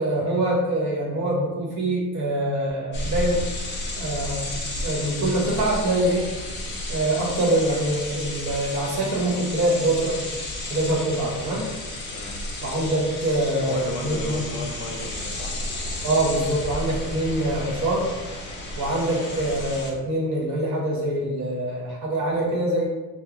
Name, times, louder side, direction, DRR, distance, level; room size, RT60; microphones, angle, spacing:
voice 1, 0.0-3.4 4.0-4.4 4.8-6.3 6.9-10.3 10.7-11.6 12.6-14.5 16.0-18.1 18.8-22.9, right 1 dB, 50° right, -3 dB, 1.2 m, -24 dB
sound 1, 2.9-19.9, left 1 dB, 30° left, 0.8 m, -32 dB
voice 2, 13.6-15.5, left 3 dB, 70° left, 2 dB, 0.7 m, -34 dB
3.0 x 2.2 x 3.7 m, 1.2 s
cardioid pair, 155°, 36 cm